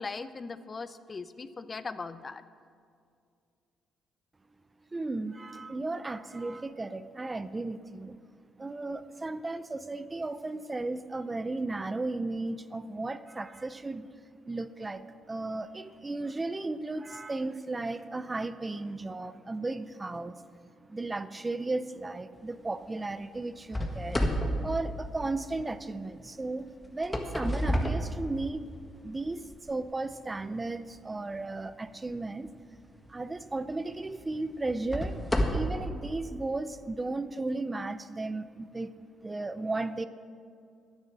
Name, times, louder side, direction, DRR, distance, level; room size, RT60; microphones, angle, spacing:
voice 1, 0.0-2.4, left 4 dB, 35° left, 13 dB, 0.5 m, -39 dB
voice 2, 4.9-8.2 8.6-14.1 14.5-20.4 20.9-24.3 24.6-28.7 29.0-32.5 33.1-35.2 35.5-39.0 39.2-40.1, right 2 dB, 20° right, 13 dB, 0.5 m, -35 dB
sound 1, 23.7-25.7 26.8-28.8 29.4-29.6 30.2-30.3 33.0-33.1 33.7-33.8 34.6-35.9, equal, 15° left, 1.6 m, -30 dB
10.5 x 9.7 x 7.4 m, 2.3 s
cardioid pair, 90°, 0 cm